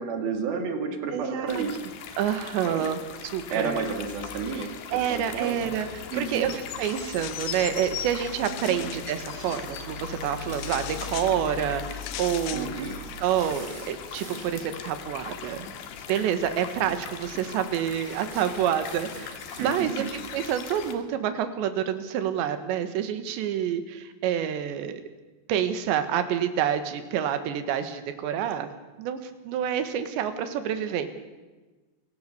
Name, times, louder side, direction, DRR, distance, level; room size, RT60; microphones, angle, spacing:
voice 1, 0.0-1.8 2.6-2.9 3.5-5.6 6.1-6.5 8.7-8.9 12.5-12.9 19.6-19.9, right 5 dB, 60° right, 5 dB, 3.8 m, -31 dB
voice 2, 1.1-1.6 2.2-3.0 3.3-3.8 4.9-12.7 13.2-15.7 16.1-20.1 20.3-25.0 25.5-28.7 29.0-31.1, right 9 dB, 80° right, 9 dB, 3.7 m, -28 dB
sound 1, 1.5-21.0, left 8 dB, 75° left, 3.6 m, -39 dB
sound 2, 5.3-6.9 7.4-8.9 10.2-11.4 12.1-12.5 12.8-13.0 13.3-14.7 16.0-16.2 16.5-16.6 16.9-17.3 17.9-19.8, equal, 10° right, 8.0 m, -45 dB
sound 3, 6.7-7.8 8.2-9.6 10.5-11.4 12.0-12.7, left 14 dB, 90° left, 3.2 m, -40 dB
28.0 x 17.5 x 7.0 m, 1.2 s
omnidirectional pair, 5.0 m